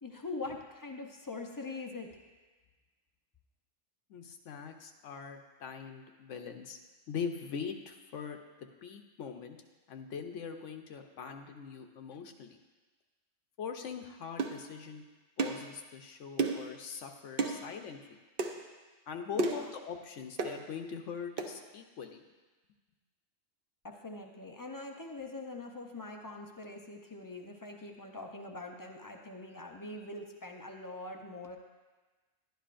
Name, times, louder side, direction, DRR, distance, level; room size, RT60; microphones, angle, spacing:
voice 1, 0.0-2.1 19.3-19.7 23.8-31.6, left 2 dB, 35° left, 2 dB, 0.3 m, -43 dB
voice 2, 4.1-6.8 7.1-9.6 9.9-12.6 13.6-15.0 15.4-18.2 19.1-22.2, left 6 dB, 70° left, 5 dB, 1.0 m, -42 dB
sound 1, 14.4-14.6 15.4-15.7 16.4-16.7 17.4-17.6 18.4-18.6 19.4-19.7 20.4-20.6 21.4-21.5, right 3 dB, 50° right, 0.8 m, -31 dB
12.0 x 10.5 x 2.5 m, 1.3 s
omnidirectional pair, 1.3 m